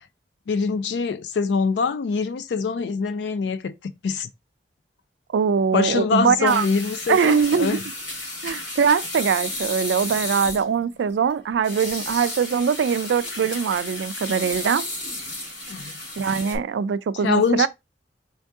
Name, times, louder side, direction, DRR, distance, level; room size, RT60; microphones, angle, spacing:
voice 1, 0.5-4.3 5.7-7.8 15.7-15.9 17.2-17.7, left 5 dB, 70° left, 0.4 m, -24 dB
voice 2, 5.3-6.6 7.1-7.8 8.4-14.8 16.2-17.7, right 6 dB, 80° right, 0.3 m, -22 dB
sound 1, 6.5-16.6, left 1 dB, 90° left, 2.0 m, -33 dB
4.4 x 2.6 x 3.5 m
head